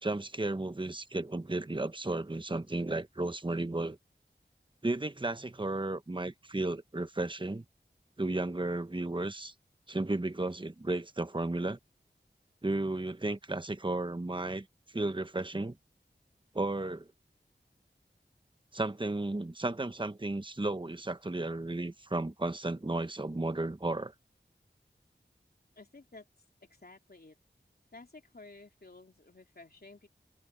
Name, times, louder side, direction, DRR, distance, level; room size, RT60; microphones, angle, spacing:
voice 1, 0.0-4.0 4.8-7.6 8.2-9.5 9.9-11.8 12.6-14.7 14.9-15.8 16.5-17.1 18.7-24.1, right 2 dB, 25° right, 1.0 m, -33 dB
voice 2, 25.8-26.3 26.8-27.4 27.9-30.1, left 3 dB, 55° left, 3.1 m, -53 dB
open air
wide cardioid pair, 45°, 19 cm